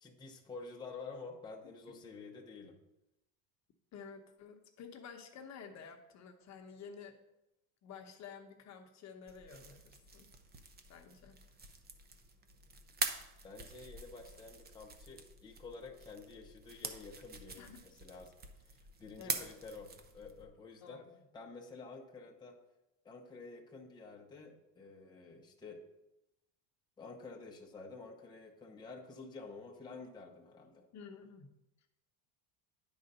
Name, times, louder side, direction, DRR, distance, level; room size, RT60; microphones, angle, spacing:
voice 1, 0.0-2.8 13.4-18.3 18.7-19.9 20.1-21.0 21.3-22.6 23.0-25.8 27.0-30.8, left 4 dB, 10° left, 0 dB, 0.8 m, -50 dB
voice 2, 3.9-7.2 7.8-10.3 10.9-11.4 17.6-17.8 19.2-19.5 20.8-21.0 30.9-31.5, left 6 dB, 40° left, 5 dB, 0.9 m, -51 dB
sound 1, 9.3-20.5, right 4 dB, 25° right, 0.7 m, -45 dB
9.4 x 3.9 x 5.4 m, 0.92 s
cardioid pair, 130°, 40 cm